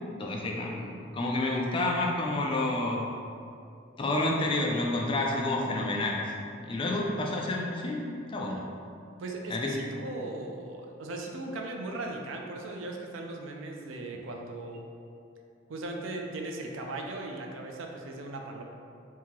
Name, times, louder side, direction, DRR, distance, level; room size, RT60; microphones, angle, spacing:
voice 1, 0.2-3.1 4.0-6.2 6.6-8.6 9.5-9.8, left 2 dB, 25° left, -1 dB, 0.3 m, -29 dB
voice 2, 9.2-14.8 15.7-18.6, right 2 dB, 75° right, 2 dB, 0.4 m, -38 dB
3.6 x 2.7 x 3.0 m, 2.5 s
head